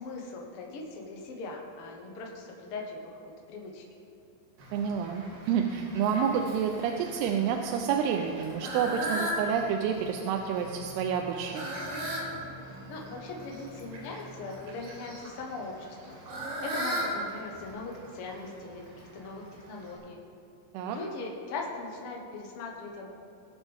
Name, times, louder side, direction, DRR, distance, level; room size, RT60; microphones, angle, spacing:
voice 1, 0.0-3.8 12.9-16.2 16.6-20.2 20.9-23.1, left 3 dB, 75° left, -1 dB, 1.3 m, -40 dB
Fowl, 4.6-20.0, equal, 65° right, 3.2 m, -39 dB
voice 2, 4.7-11.7 20.7-21.0, right 7 dB, 85° right, 4 dB, 2.6 m, -29 dB
20.0 x 7.1 x 3.5 m, 2.6 s
omnidirectional pair, 4.6 m